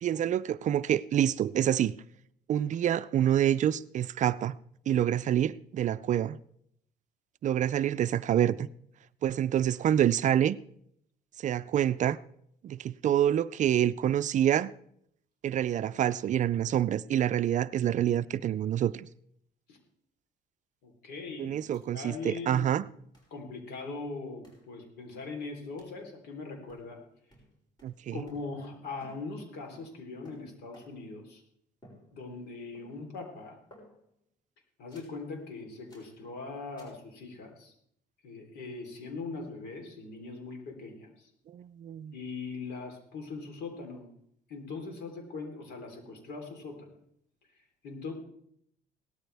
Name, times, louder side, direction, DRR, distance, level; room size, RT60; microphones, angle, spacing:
voice 1, 0.0-1.9 2.5-4.6 4.9-6.4 7.4-8.7 9.2-10.6 11.4-12.2 12.6-14.7 15.4-19.1 21.4-22.8 27.8-28.1 41.5-42.1, right 10 dB, 45° right, 0.4 m, -27 dB
voice 2, 20.8-21.6 21.9-22.8 23.3-27.0 28.1-31.4 32.1-33.6 34.8-37.7 38.2-41.3 42.1-44.1 44.5-46.9 47.8-48.1, left 3 dB, 75° left, 3.7 m, -41 dB
sound 1, 21.7-21.8 22.1-22.2 23.1-23.4 24.4-24.7 25.8-26.0 26.7-27.0 27.3-28.7 29.0-31.2 31.8-32.5 32.7-33.2 33.7-34.2 34.9-35.2 35.9-36.2 36.8-37.0, equal, 25° left, 5.7 m, -59 dB
17.5 x 13.5 x 3.5 m
cardioid pair, 110°, 17 cm